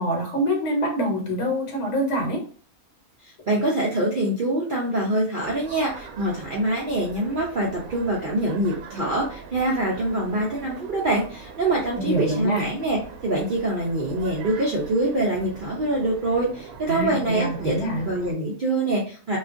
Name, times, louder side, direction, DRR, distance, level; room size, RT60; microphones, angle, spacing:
voice 1, 0.0-2.4 12.0-12.7 16.9-18.0, equal, 60° left, 1 dB, 1.1 m, -25 dB
voice 2, 3.2-19.4, right 1 dB, 60° right, -4 dB, 0.5 m, -25 dB
sound 1, 5.4-18.3, right 5 dB, 85° right, 1.1 m, -42 dB
2.4 x 2.2 x 2.5 m, 0.40 s
omnidirectional pair, 1.5 m